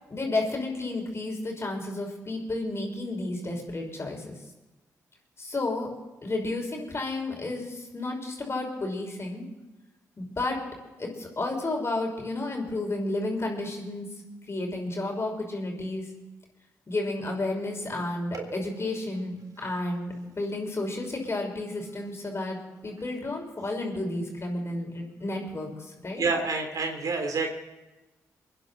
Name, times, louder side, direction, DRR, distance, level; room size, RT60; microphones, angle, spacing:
voice 1, 0.1-4.2 5.4-5.9 6.2-9.4 10.2-10.6 11.0-14.1 14.5-16.0 16.9-22.6 22.8-26.2, left 2 dB, 40° left, 1 dB, 5.8 m, -32 dB
voice 2, 26.2-27.5, right 4 dB, 55° right, 4 dB, 3.6 m, -28 dB
24.5 x 10.5 x 4.2 m, 1.1 s
hypercardioid pair, 45°, 7 cm